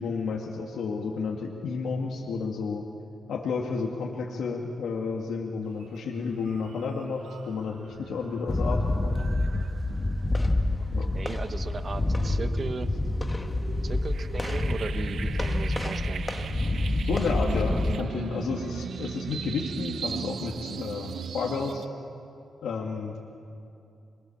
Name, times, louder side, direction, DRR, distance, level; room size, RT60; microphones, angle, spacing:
voice 1, 0.0-2.8 3.3-9.2 10.9-11.1 17.0-21.9 22.6-23.2, left 4 dB, 85° left, -1 dB, 2.2 m, -31 dB
sound 1, 5.8-6.0 6.4-21.9, right 6 dB, 60° right, 0.7 m, -39 dB
sound 2, 8.5-17.9, left 2 dB, 15° left, 1.1 m, -28 dB
voice 2, 11.1-12.9 13.8-16.3, right 4 dB, 35° right, 9 dB, 0.9 m, -36 dB
27.0 x 22.5 x 7.4 m, 2.6 s
wide cardioid pair, 160°, 0 cm